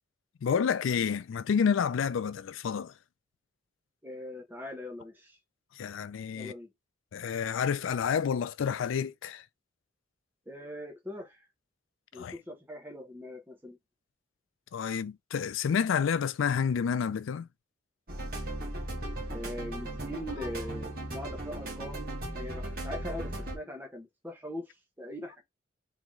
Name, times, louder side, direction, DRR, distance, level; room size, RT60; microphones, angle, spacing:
voice 1, 0.4-2.9 5.8-6.5 7.1-9.4 12.2-12.3 14.7-17.5, left 7 dB, 90° left, 0.4 m, -29 dB
voice 2, 4.0-5.4 6.3-6.7 10.5-11.4 12.1-13.8 19.3-25.4, left 1 dB, 10° right, 0.9 m, -41 dB
sound 1, 18.1-23.6, right 1 dB, 50° right, 1.4 m, -37 dB
3.8 x 2.9 x 3.0 m
head